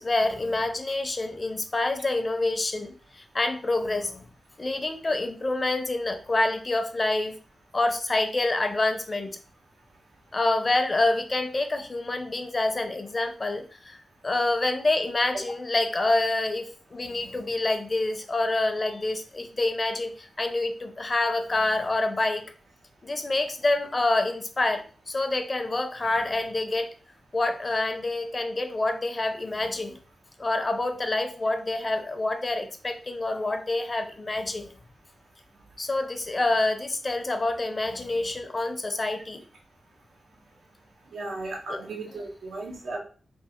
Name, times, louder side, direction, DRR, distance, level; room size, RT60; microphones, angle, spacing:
voice 1, 0.0-4.3 4.6-7.4 7.7-9.4 10.3-14.0 14.2-22.5 23.0-26.9 27.3-30.0 30.4-34.7 35.8-39.4 41.7-41.8 42.1-42.2, left 2 dB, 30° left, 7 dB, 0.6 m, -27 dB
voice 2, 41.1-43.0, right 2 dB, 85° right, -1 dB, 1.3 m, -35 dB
3.6 x 2.5 x 4.3 m, 0.39 s
wide cardioid pair, 115°, 0 cm